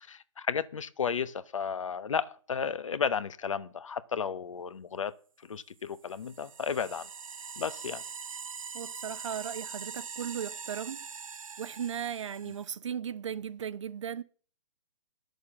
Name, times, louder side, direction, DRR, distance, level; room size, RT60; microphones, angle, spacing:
voice 1, 0.1-5.1 5.4-7.1 7.6-8.0 12.5-12.6, left 6 dB, 75° left, 1.0 m, -33 dB
sound 1, 5.9-12.7, right 6 dB, 85° right, 0.5 m, -43 dB
voice 2, 8.7-11.0 11.6-14.2, right 8 dB, 65° right, 1.0 m, -37 dB
11.0 x 6.7 x 7.7 m
figure-of-eight pair, 125°, 17 cm